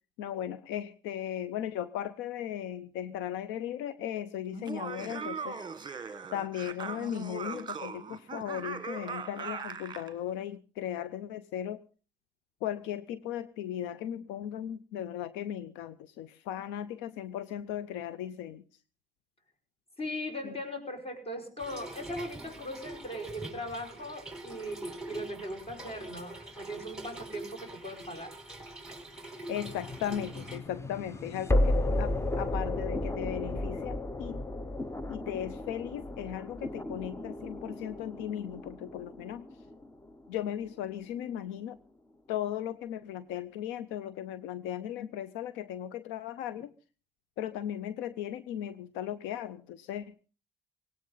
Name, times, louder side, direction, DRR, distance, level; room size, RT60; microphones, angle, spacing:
voice 1, 0.2-5.6 6.3-11.8 12.6-18.6 20.4-20.5 29.5-34.4 35.1-39.5 40.3-41.8 42.3-46.7 47.4-50.1, left 10 dB, 80° left, 16 dB, 0.7 m, -37 dB
Laughter, 4.5-10.1, right 5 dB, 25° right, 1.5 m, -39 dB
voice 2, 20.0-28.4, equal, 30° left, 6 dB, 5.4 m, -39 dB
Trickle dribble / Fill (with liquid), 21.6-30.6, right 2 dB, 5° right, 4.3 m, -45 dB
sound 1, 29.7-40.7, left 1 dB, 15° left, 0.9 m, -33 dB
18.0 x 17.0 x 4.0 m, 0.37 s
supercardioid pair, 80°, 19 cm